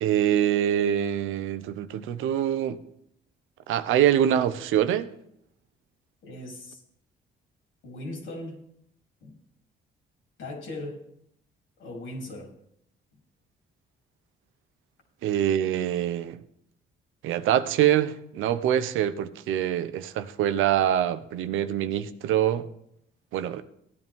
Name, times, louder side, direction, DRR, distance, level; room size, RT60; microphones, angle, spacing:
voice 1, 0.0-2.8 3.7-5.1 15.2-16.4 17.2-22.7 23.3-23.6, right 10 dB, 90° right, 0.8 m, -24 dB
voice 2, 6.2-6.8 7.8-8.6 9.2-9.4 10.4-11.1 11.8-12.5, left 1 dB, 80° left, 3.3 m, -38 dB
15.5 x 9.8 x 3.6 m
cardioid pair, 90°, 20 cm